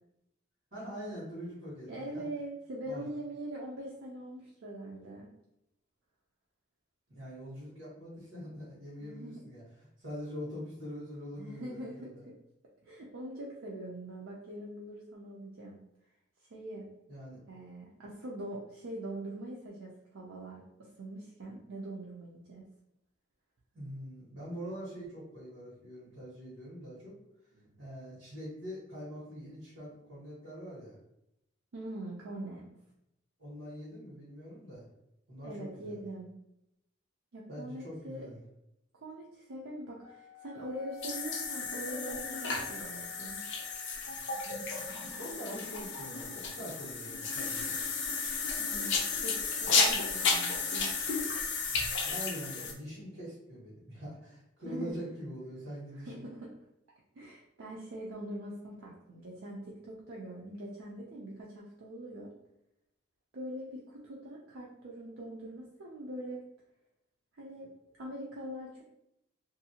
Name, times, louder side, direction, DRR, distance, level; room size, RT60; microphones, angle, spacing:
voice 1, 0.7-2.2 2.8-3.0 7.1-12.2 17.1-17.4 23.7-27.1 27.8-31.0 33.4-34.9 35.3-36.0 37.5-38.4 45.2-47.8 52.0-56.2, equal, 60° right, -9 dB, 1.3 m, -44 dB
voice 2, 1.9-5.3 9.0-9.4 11.4-12.4 12.8-15.8 16.5-16.9 17.5-22.6 27.5-27.8 31.7-32.7 35.4-36.3 37.3-38.2 38.9-43.4 48.6-50.9 54.7-55.1 55.9-56.6 57.1-62.3 63.3-66.4 67.3-68.8, right 1 dB, 85° right, -3 dB, 0.5 m, -43 dB
Wind instrument woodwind instrument, 40.0-44.1, left 8 dB, 35° left, 1.3 m, -52 dB
sound 1, 41.0-52.7, left 4 dB, 65° left, 0.5 m, -33 dB
2.7 x 2.6 x 2.8 m, 0.82 s
head